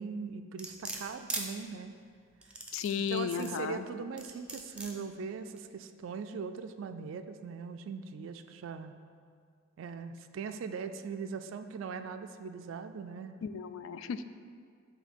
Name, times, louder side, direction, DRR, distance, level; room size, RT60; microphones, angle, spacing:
voice 1, 0.0-1.9 3.1-8.9 9.8-13.4, right 5 dB, 80° right, 8 dB, 0.3 m, -40 dB
sound 1, 0.6-1.5 2.4-3.6 4.2-4.9 5.6-5.7, right 2 dB, 5° right, 0.6 m, -39 dB
voice 2, 2.7-3.8 13.4-14.2, left 7 dB, 85° left, 11 dB, 0.3 m, -34 dB
7.5 x 2.8 x 5.2 m, 2.1 s
head